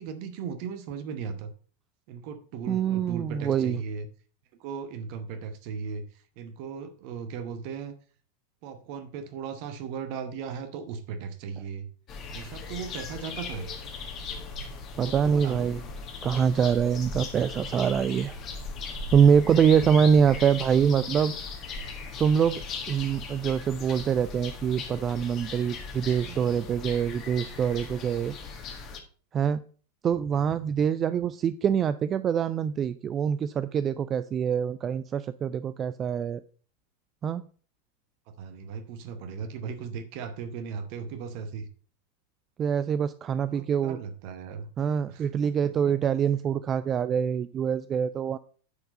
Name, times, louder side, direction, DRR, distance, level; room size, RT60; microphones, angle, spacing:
voice 1, 0.0-1.5 2.1-4.1 4.6-8.0 8.6-11.9 12.2-13.7 14.9-15.7 26.2-26.5 38.3-41.7 43.5-44.7 45.1-45.9, right 6 dB, 45° right, 9 dB, 1.0 m, -37 dB
voice 2, 2.7-3.8 15.0-15.8 16.2-18.4 19.1-21.4 22.2-28.4 29.3-29.6 30.0-36.4 37.2-37.5 42.6-44.0 44.8-48.4, right 7 dB, 25° right, 14 dB, 0.3 m, -25 dB
sound 1, 12.1-29.0, left 4 dB, 35° left, 1.6 m, -38 dB
9.6 x 4.6 x 5.3 m, 0.42 s
figure-of-eight pair, 90°, 0 cm